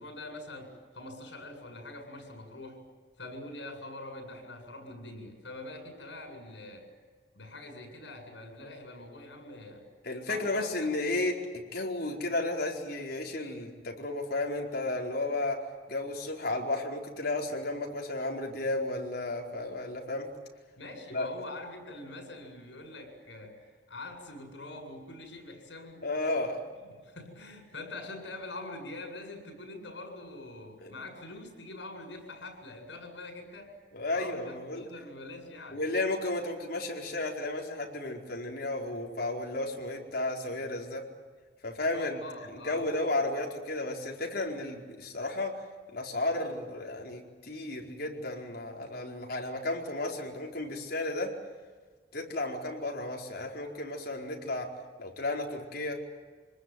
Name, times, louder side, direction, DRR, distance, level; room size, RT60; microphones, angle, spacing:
voice 1, 0.0-2.8 3.2-6.9 7.3-9.9 10.2-10.9 20.8-23.6 23.9-26.1 27.0-33.7 34.1-35.8 41.9-42.8, left 2 dB, 75° left, 5 dB, 8.0 m, -44 dB
voice 2, 10.0-15.6 15.9-20.3 21.1-21.3 26.0-26.6 30.8-30.9 33.9-34.9 35.7-41.0 41.6-42.2 42.5-45.6 45.9-51.3 52.1-54.7 55.0-56.0, left 2 dB, 55° left, 0 dB, 4.6 m, -33 dB
27.0 x 20.0 x 9.3 m, 1.5 s
head